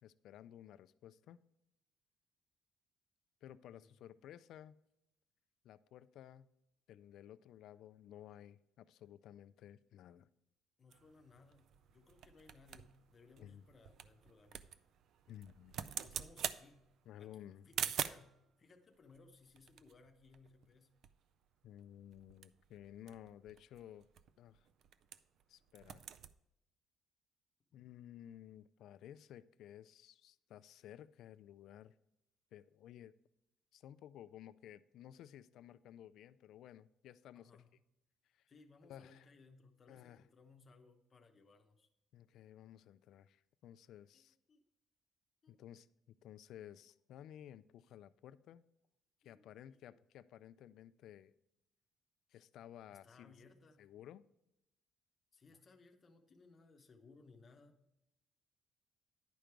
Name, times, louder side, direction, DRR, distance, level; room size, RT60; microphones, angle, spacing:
voice 1, 0.0-1.4 3.4-4.8 5.6-6.5 6.9-10.3 13.4-13.6 15.3-15.7 17.1-17.9 21.6-24.1 24.4-24.7 25.5-26.1 27.7-31.9 32.5-33.1 33.7-37.6 38.3-38.5 38.8-39.2 39.9-40.2 42.1-44.4 45.5-45.9 46.2-48.6 49.2-51.3 52.3-53.3 53.8-54.2 55.5-55.6, left 11 dB, 65° left, 15 dB, 0.3 m, -55 dB
voice 2, 10.8-14.7 16.0-16.9 17.2-17.3 17.6-21.0 37.3-37.7 38.5-41.9 44.1-44.2 44.5-44.6 45.4-45.6 49.2-49.8 52.9-53.9 55.3-57.8, left 3 dB, 25° left, 3 dB, 0.9 m, -63 dB
sound 1, 10.9-18.4 19.1-20.8 21.0-21.1 21.4-21.7 22.1-25.4 25.7-26.3, right 9 dB, 55° right, 0.3 m, -46 dB
10.0 x 5.1 x 4.5 m, 0.86 s
cardioid pair, 165°, 0 cm